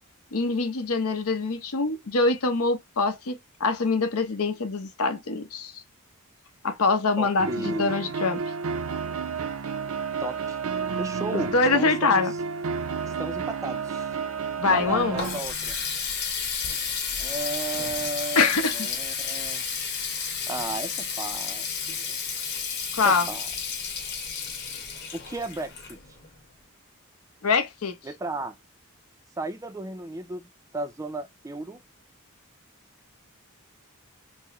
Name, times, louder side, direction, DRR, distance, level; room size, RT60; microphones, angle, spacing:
voice 1, 0.3-5.7 6.6-8.4 11.3-12.3 14.6-15.2 18.4-18.9 22.9-23.3 27.4-28.0, left 3 dB, 85° left, 0.8 m, -24 dB
voice 2, 7.2-8.1 10.2-10.6 11.0-12.3 13.0-14.2 14.7-15.8 17.2-19.7 20.5-22.3 23.0-23.5 25.1-26.0 28.0-28.6 29.4-31.8, right 2 dB, 15° right, 0.4 m, -34 dB
sound 1, 7.4-15.4, right 5 dB, 70° right, 0.5 m, -31 dB
Water tap faucet, 14.8-26.4, left 6 dB, 50° left, 1.4 m, -32 dB
4.5 x 2.0 x 3.0 m
head